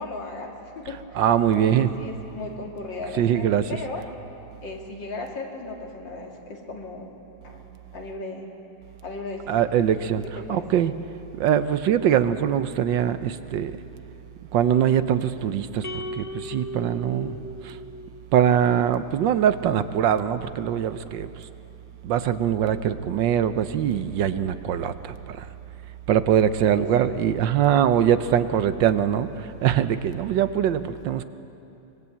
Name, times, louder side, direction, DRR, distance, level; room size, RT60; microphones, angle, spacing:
voice 1, 0.0-1.2 1.5-4.0 4.6-7.1 7.4-7.7 7.9-8.5 9.0-9.8 10.3-10.6 26.6-27.1, left 3 dB, 70° left, 1 dB, 3.1 m, -36 dB
voice 2, 1.2-2.0 3.2-3.7 9.5-10.2 10.5-10.9 11.4-13.8 14.5-17.4 17.6-17.8 18.3-21.3 22.0-25.5 26.1-31.2, right 9 dB, 75° right, 12 dB, 1.5 m, -22 dB
sound 1, 15.8-18.3, equal, 35° left, 0.6 m, -36 dB
24.5 x 21.0 x 8.5 m, 2.8 s
omnidirectional pair, 2.1 m